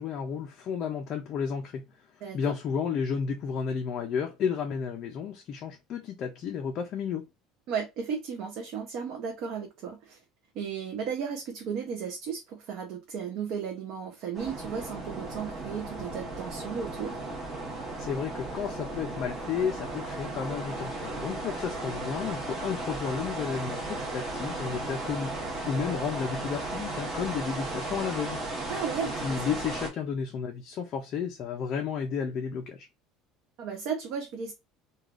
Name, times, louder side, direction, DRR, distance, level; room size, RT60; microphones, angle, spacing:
voice 1, 0.0-2.0 2.3-7.3 18.0-25.4 25.6-28.4 29.2-32.9, left 6 dB, 35° left, 0.4 m, -32 dB
voice 2, 7.7-10.2 10.5-17.2 28.7-29.4 33.6-34.5, right 6 dB, 50° right, 0.5 m, -35 dB
sound 1, 14.3-29.9, right 2 dB, 20° right, 0.8 m, -35 dB
3.2 x 2.2 x 2.4 m
cardioid pair, 175°, 0 cm